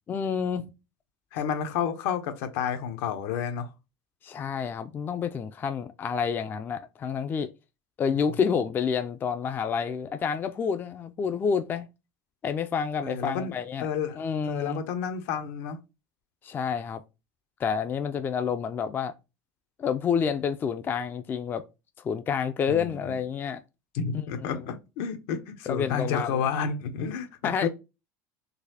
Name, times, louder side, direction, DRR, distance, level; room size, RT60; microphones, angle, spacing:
voice 1, 0.1-0.7 4.2-7.5 8.0-11.9 12.4-13.9 14.2-14.8 16.4-17.0 17.6-19.1 19.8-21.6 22.0-23.6 24.4-24.6 25.7-26.4 27.4-27.7, left 6 dB, 25° left, 0.3 m, -29 dB
voice 2, 1.3-3.7 13.0-13.5 13.8-15.8 22.7-23.2 23.9-27.3 27.6-27.7, left 7 dB, 75° left, 0.8 m, -30 dB
4.0 x 2.7 x 2.7 m
supercardioid pair, 135°, 8 cm